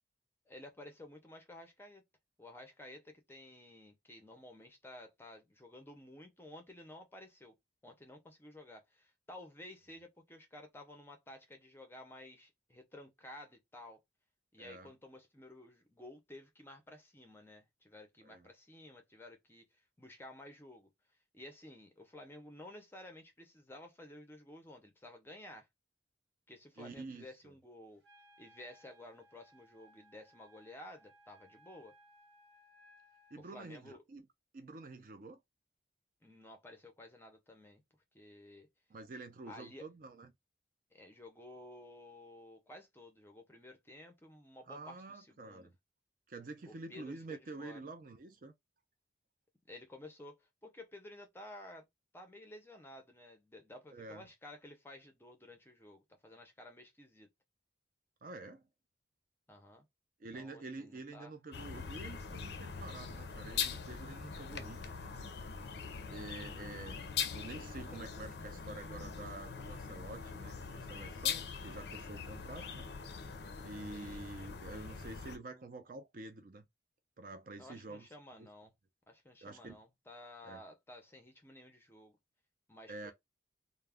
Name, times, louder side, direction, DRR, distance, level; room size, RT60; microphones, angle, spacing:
voice 1, 0.5-2.0 2.4-7.5 7.8-14.0 14.5-20.9 21.3-25.7 26.5-28.0 28.4-31.9 33.4-34.0 36.2-37.8 38.1-38.7 39.4-39.9 40.9-45.7 46.7-47.8 49.6-51.9 52.1-57.3 59.5-59.8 60.3-61.3 64.5-64.7 73.9-74.2 77.6-78.7 79.1-82.2 82.7-83.1, left 1 dB, 10° left, 0.5 m, -53 dB
voice 2, 14.6-14.9 18.2-18.5 26.8-27.5 33.3-34.3 34.5-35.4 38.9-40.3 44.7-45.7 46.3-48.5 53.9-54.3 58.2-58.7 60.2-65.2 66.1-67.0 67.3-72.9 73.6-76.7 77.2-78.1 78.4-78.5 79.4-79.8 80.4-80.6 82.9-83.1, right 3 dB, 45° right, 0.4 m, -48 dB
Wind instrument woodwind instrument, 28.0-33.4, equal, 70° right, 1.0 m, -64 dB
sound 1, 61.5-75.4, left 6 dB, 60° left, 0.4 m, -42 dB
2.2 x 2.0 x 3.3 m
head